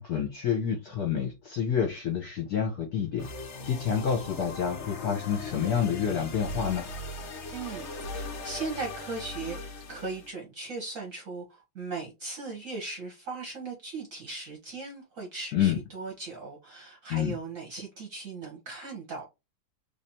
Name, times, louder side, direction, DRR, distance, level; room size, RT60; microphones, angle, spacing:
voice 1, 0.0-3.3 3.6-6.9 15.5-15.8 17.1-17.3, left 8 dB, 55° left, 1.1 m, -28 dB
sound 1, 3.2-10.3, left 2 dB, 75° left, 0.6 m, -39 dB
voice 2, 7.5-19.2, right 3 dB, 50° right, 1.1 m, -38 dB
3.4 x 3.2 x 2.8 m
omnidirectional pair, 2.4 m